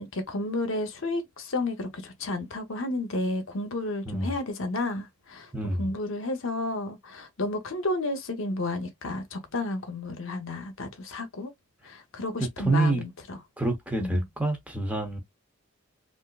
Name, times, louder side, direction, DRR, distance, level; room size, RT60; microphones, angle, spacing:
voice 1, 0.0-5.5 5.8-11.5 11.8-13.4 14.0-14.3, left 2 dB, 60° left, 0.8 m, -32 dB
voice 2, 5.5-5.9 12.4-13.0 13.6-15.2, right 2 dB, 5° right, 0.8 m, -27 dB
3.5 x 2.6 x 2.4 m
head